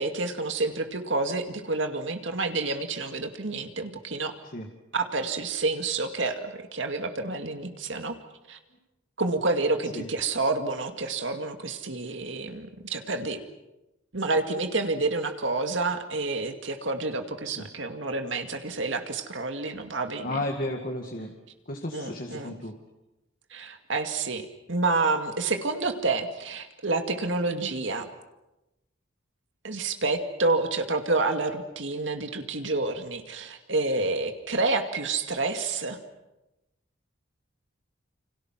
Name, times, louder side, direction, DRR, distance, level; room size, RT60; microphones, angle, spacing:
voice 1, 0.0-4.3 4.9-8.1 8.5-8.6 9.2-13.4 14.1-20.4 21.9-22.5 23.5-28.1 29.6-36.0, right 3 dB, 70° right, 6 dB, 2.3 m, -29 dB
voice 2, 20.2-21.3 21.7-22.7, left 1 dB, 45° left, 2 dB, 2.3 m, -33 dB
29.0 x 26.5 x 6.1 m, 0.96 s
head